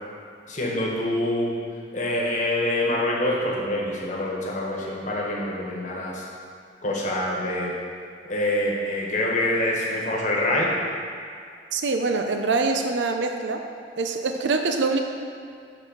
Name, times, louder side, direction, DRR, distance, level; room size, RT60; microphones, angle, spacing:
voice 1, 0.5-1.5 1.9-6.2 6.8-7.7 8.3-10.7, left 1 dB, 45° left, -3 dB, 1.3 m, -25 dB
voice 2, 11.7-13.6 14.0-15.0, right 3 dB, 80° right, 5 dB, 0.5 m, -24 dB
5.9 x 4.7 x 6.4 m, 2.4 s
head